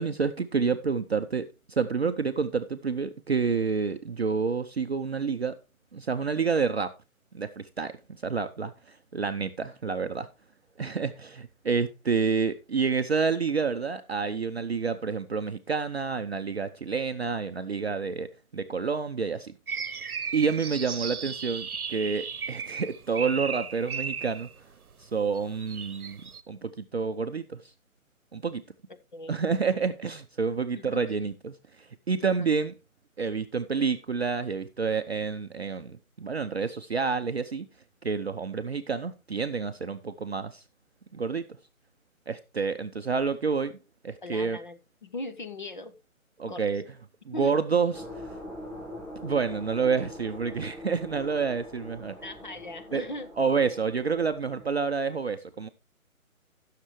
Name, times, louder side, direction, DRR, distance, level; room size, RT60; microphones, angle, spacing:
voice 1, 0.0-5.5 5.9-6.9 7.3-7.9 8.2-10.3 10.8-18.3 18.5-19.5 20.3-24.5 25.0-27.7 28.3-28.6 29.3-32.7 33.2-37.7 38.0-40.6 41.1-41.5 42.3-43.8 44.0-44.6 46.4-46.8 47.3-48.4 49.2-52.2 52.9-53.0 53.4-55.7, right 5 dB, 50° right, 0.6 m, -29 dB
sound 1, 19.7-24.5 25.3-26.4, right 6 dB, 85° right, 0.9 m, -35 dB
voice 2, 30.7-31.2 32.2-32.5 44.2-46.0 46.4-46.7 47.3-47.6 52.2-53.3, left 1 dB, 35° left, 0.7 m, -39 dB
sound 2, 47.9-54.7, left 1 dB, 5° right, 7.1 m, -43 dB
16.5 x 6.6 x 3.1 m
figure-of-eight pair, 155°, 43 cm